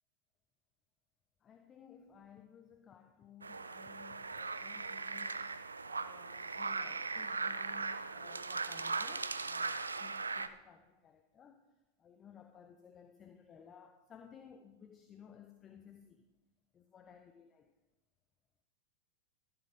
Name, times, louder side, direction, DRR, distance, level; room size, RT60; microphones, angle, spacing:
voice 1, 1.4-11.6 12.0-16.3 16.7-17.7, left 8 dB, 25° left, 6 dB, 0.7 m, -58 dB
sound 1, 3.4-10.5, right 4 dB, 75° right, 0.5 m, -39 dB
14.5 x 5.8 x 5.5 m, 1.0 s
figure-of-eight pair, 90°, 0 cm